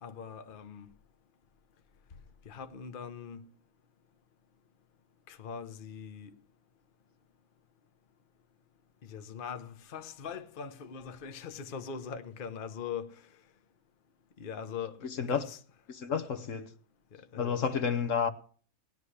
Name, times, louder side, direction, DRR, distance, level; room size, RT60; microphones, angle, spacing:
voice 1, 0.0-0.9 2.5-3.5 5.3-6.3 9.1-13.2 14.4-15.0 15.3-15.6 17.1-17.6, left 6 dB, 40° left, 1.0 m, -41 dB
voice 2, 15.9-16.7 17.4-18.3, left 6 dB, 60° left, 1.3 m, -30 dB
18.5 x 11.0 x 3.3 m
omnidirectional pair, 1.5 m